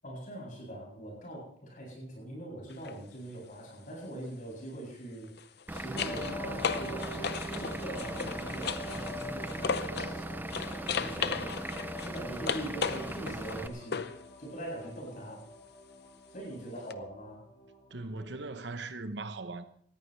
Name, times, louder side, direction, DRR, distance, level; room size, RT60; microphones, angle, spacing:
voice 1, 0.0-14.1 14.4-15.5 16.3-17.4, right 1 dB, 50° left, 7.8 m, -42 dB
sound 1, 2.7-2.9 5.2-10.2 10.5-14.2 16.9-17.0, left 6 dB, 65° left, 0.7 m, -36 dB
Vehicle / Engine, 5.7-13.7, right 1 dB, 10° right, 0.5 m, -39 dB
sound 2, 5.9-18.5, left 1 dB, 30° left, 4.5 m, -46 dB
voice 2, 17.9-19.6, right 3 dB, 75° right, 1.0 m, -39 dB
19.0 x 14.5 x 3.3 m
head